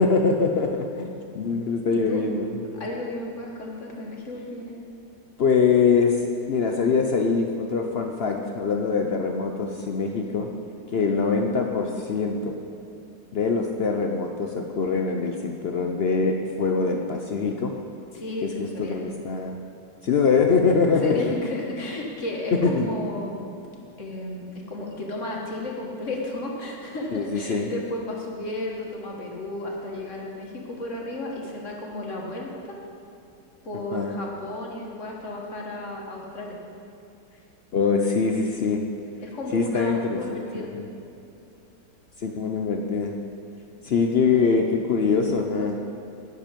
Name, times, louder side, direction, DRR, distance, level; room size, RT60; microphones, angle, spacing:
voice 1, 0.0-2.8 5.4-6.2 6.5-10.5 10.9-12.6 13.3-17.7 18.4-19.6 20.0-21.4 22.6-22.9 27.1-27.7 33.9-34.1 37.7-38.8 39.5-40.4 40.7-40.8 42.2-43.1 43.8-45.8, left 4 dB, 70° left, 3 dB, 0.6 m, -23 dB
voice 2, 1.9-2.2 2.7-4.8 18.1-19.0 21.0-23.5 24.0-32.5 33.6-36.6 39.2-40.7 43.8-43.9, left 1 dB, 45° left, -1 dB, 1.8 m, -33 dB
10.5 x 10.0 x 5.2 m, 2.7 s
omnidirectional pair, 1.9 m